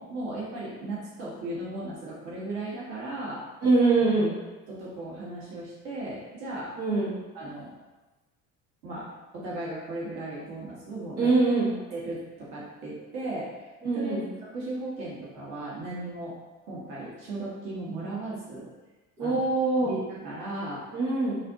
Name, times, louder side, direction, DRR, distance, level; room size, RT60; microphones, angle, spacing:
voice 1, 0.0-3.4 4.0-4.1 4.7-6.7 7.3-7.7 8.8-9.1 9.3-11.3 11.9-13.7 13.9-16.4 16.6-18.7 19.2-19.5 19.8-20.8, right 2 dB, 70° right, -6 dB, 1.5 m, -36 dB
voice 2, 3.6-4.3 6.8-7.2 11.2-11.7 13.8-14.3 19.2-19.9 20.9-21.4, right 3 dB, 90° right, -10 dB, 1.4 m, -23 dB
4.8 x 2.6 x 3.6 m, 1.2 s
hypercardioid pair, 55°, 43 cm